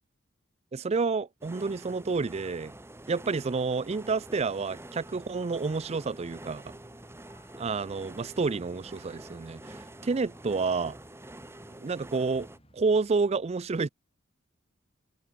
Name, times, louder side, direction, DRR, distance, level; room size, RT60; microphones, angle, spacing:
voice 1, 0.7-2.7 3.1-6.6 7.6-9.8 10.0-11.0 11.8-12.5 12.7-13.9, right 4 dB, 30° right, 0.4 m, -29 dB
sound 1, 1.4-12.6, right 1 dB, 10° right, 1.3 m, -47 dB
sound 2, 5.7-13.1, left 1 dB, 30° left, 3.8 m, -61 dB
head